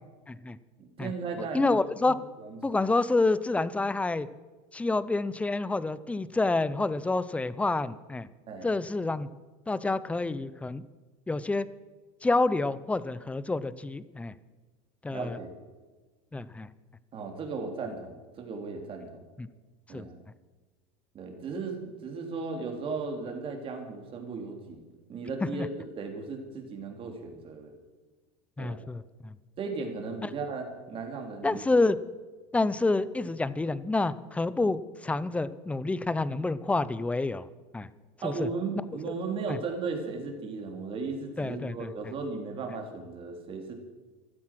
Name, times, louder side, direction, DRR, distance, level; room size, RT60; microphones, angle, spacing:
voice 1, 0.3-0.6 1.0-1.1 1.4-2.2 2.6-4.3 4.7-8.3 8.6-9.3 9.7-10.8 11.3-11.7 12.2-14.3 15.0-15.4 16.3-16.7 19.4-19.5 19.9-20.1 25.5-25.7 28.6-29.3 30.2-30.3 31.4-32.0 32.5-37.5 37.7-37.9 38.2-38.5 39.1-39.2 39.5-39.6 41.4-41.9, left 3 dB, 10° left, 16 dB, 0.6 m, -28 dB
voice 2, 0.8-2.8 8.5-8.7 15.1-15.5 17.1-19.2 19.9-20.2 21.1-24.8 25.1-27.8 28.6-28.8 29.6-31.6 38.2-43.7, right 4 dB, 35° right, 3 dB, 3.4 m, -36 dB
15.0 x 12.5 x 6.0 m, 1.3 s
supercardioid pair, 130°, 16 cm